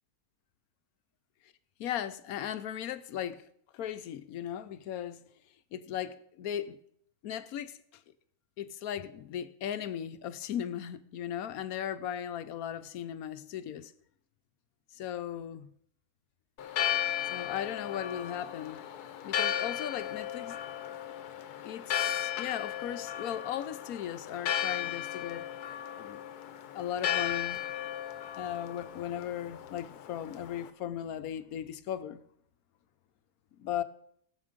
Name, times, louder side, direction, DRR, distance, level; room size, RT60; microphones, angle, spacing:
voice 1, 1.8-3.4 3.7-5.2 5.7-6.8 7.2-7.8 8.6-13.9 14.9-15.7 17.3-18.8 19.2-20.6 21.6-25.5 26.0-26.2 26.7-27.6 28.4-32.2 33.6-33.8, left 10 dB, 70° left, 1.1 m, -37 dB
Church bell, 16.6-30.7, left 10 dB, 90° left, 1.3 m, -35 dB
18.0 x 7.2 x 5.1 m
omnidirectional pair, 1.6 m